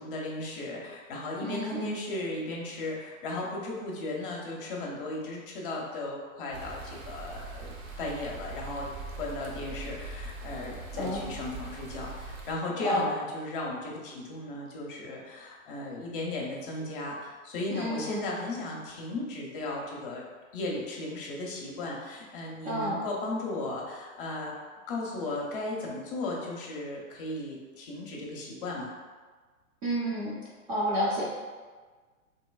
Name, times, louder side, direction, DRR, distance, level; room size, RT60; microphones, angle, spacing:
voice 1, 0.0-20.2 20.5-24.6 24.9-29.0, left 2 dB, 40° left, -2 dB, 0.6 m, -36 dB
voice 2, 1.4-1.9 10.9-11.2 12.8-13.1 17.7-18.2 22.6-23.0 29.8-30.3 30.7-31.2, equal, 25° right, -6 dB, 0.4 m, -30 dB
sound 1, 6.5-12.5, right 3 dB, 70° right, 0.8 m, -41 dB
3.1 x 2.9 x 2.3 m, 1.4 s
hypercardioid pair, 130°, 42 cm